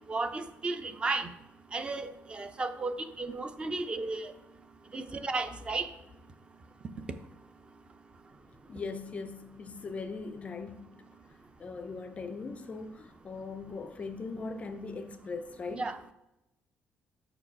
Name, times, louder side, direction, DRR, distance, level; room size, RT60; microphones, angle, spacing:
voice 1, 0.1-1.3 1.7-4.3 4.9-5.9 15.7-16.0, right 3 dB, 20° right, 0.6 m, -34 dB
voice 2, 8.7-10.9 11.6-16.0, left 4 dB, 30° left, 0.4 m, -40 dB
6.5 x 4.8 x 6.0 m
cardioid pair, 160°, 5 cm